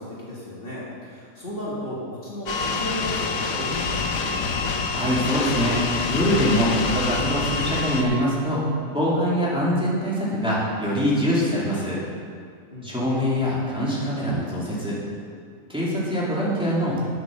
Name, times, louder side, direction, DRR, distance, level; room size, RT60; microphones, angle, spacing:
voice 1, 0.0-4.5 12.7-13.1, equal, 40° left, -7 dB, 2.2 m, -34 dB
sound 1, 2.5-8.0, left 4 dB, 75° left, 1.2 m, -26 dB
voice 2, 4.9-8.6 8.9-12.0 12.8-15.0 15.7-17.0, equal, 5° right, -8 dB, 2.6 m, -24 dB
9.6 x 8.2 x 6.3 m, 2.2 s
omnidirectional pair, 1.4 m